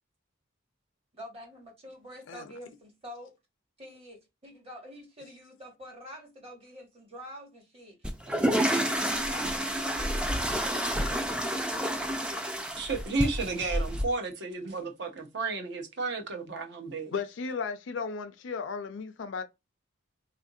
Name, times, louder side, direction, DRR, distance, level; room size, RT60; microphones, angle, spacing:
voice 1, 1.1-3.3 3.8-11.4, equal, 30° right, 1.1 m, -47 dB
sound 1, 8.0-14.0, equal, 5° right, 0.3 m, -29 dB
voice 2, 12.8-17.1, right 3 dB, 55° right, 0.7 m, -32 dB
voice 3, 17.1-19.4, left 5 dB, 60° left, 0.4 m, -35 dB
3.7 x 2.4 x 2.6 m
head